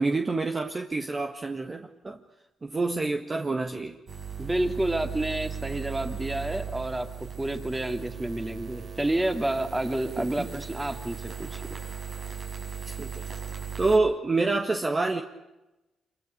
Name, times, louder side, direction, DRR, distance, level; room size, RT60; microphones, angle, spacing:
voice 1, 0.0-2.2 2.6-4.0 10.2-10.6 12.9-13.3 13.8-15.2, right 3 dB, 30° right, 4 dB, 1.7 m, -27 dB
sound 1, 4.1-14.0, right 7 dB, 55° right, 5.8 m, -37 dB
voice 2, 4.4-7.1 7.4-11.8, right 1 dB, 15° right, 6 dB, 2.8 m, -29 dB
26.0 x 23.5 x 6.7 m, 1.0 s
cardioid pair, 75°, 0 cm